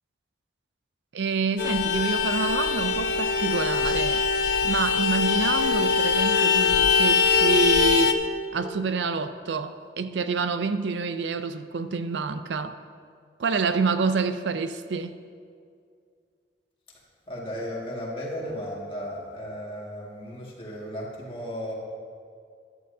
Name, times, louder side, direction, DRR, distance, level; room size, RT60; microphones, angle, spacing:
voice 1, 1.1-4.2 4.6-8.2 8.5-12.8 13.4-15.1, right 4 dB, 80° right, 0.5 m, -27 dB
Vehicle horn car horn honking, 1.6-8.1, left 5 dB, 70° left, 0.7 m, -22 dB
voice 2, 17.3-21.7, equal, 30° left, 1.9 m, -35 dB
14.0 x 11.5 x 2.7 m
head